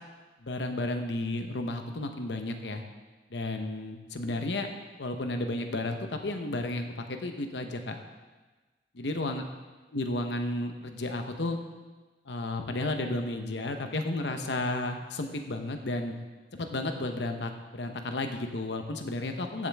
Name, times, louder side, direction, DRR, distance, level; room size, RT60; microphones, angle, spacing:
voice 1, 0.4-2.8 3.3-4.7 5.0-8.0 8.9-9.4 9.9-11.6 12.3-16.1 16.5-19.7, left 2 dB, 80° left, 6 dB, 0.9 m, -32 dB
15.0 x 7.3 x 3.5 m, 1.3 s
head